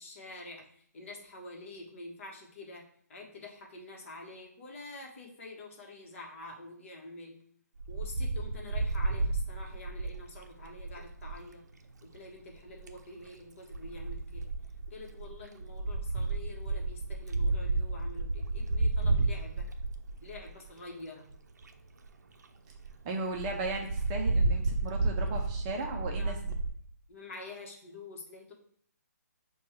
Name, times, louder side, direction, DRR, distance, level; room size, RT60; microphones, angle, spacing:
voice 1, 0.0-2.8 3.1-7.4 7.9-11.6 12.0-14.5 14.9-19.7 20.2-21.3 26.2-26.4 27.1-28.5, left 2 dB, 50° left, 0 dB, 1.0 m, -47 dB
Wind, 7.8-11.4 12.5-13.0 13.7-20.7 21.3-21.4 21.6-21.7 22.0-22.1 22.4-22.5 22.8-22.9 23.3-26.7, right 2 dB, 75° right, 0.5 m, -31 dB
voice 2, 23.0-26.5, right 3 dB, 20° right, 1 dB, 0.5 m, -36 dB
6.1 x 2.3 x 3.0 m, 0.63 s
hypercardioid pair, 150°, 9 cm